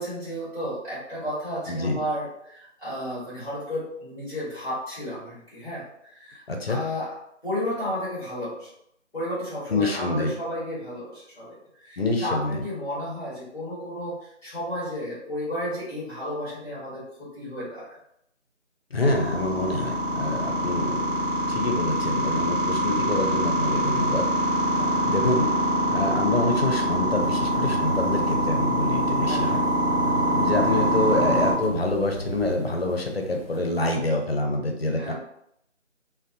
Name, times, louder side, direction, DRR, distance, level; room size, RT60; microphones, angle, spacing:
voice 1, 0.0-7.1 7.4-8.7 9.1-18.0 24.7-25.0 29.2-29.6 30.6-30.8 35.0-35.1, equal, 5° right, -12 dB, 1.2 m, -33 dB
voice 2, 1.7-2.0 6.5-6.8 9.7-10.3 12.0-12.6 18.9-21.1 21.5-24.2 25.0-25.5 25.9-29.6 30.3-35.1, left 2 dB, 55° left, 3 dB, 0.5 m, -26 dB
sound 1, 19.0-31.5, right 1 dB, 45° right, 0.8 m, -24 dB
sound 2, 27.2-33.8, right 1 dB, 20° left, 0.9 m, -37 dB
2.5 x 2.0 x 2.7 m, 0.75 s
figure-of-eight pair, 175°, 37 cm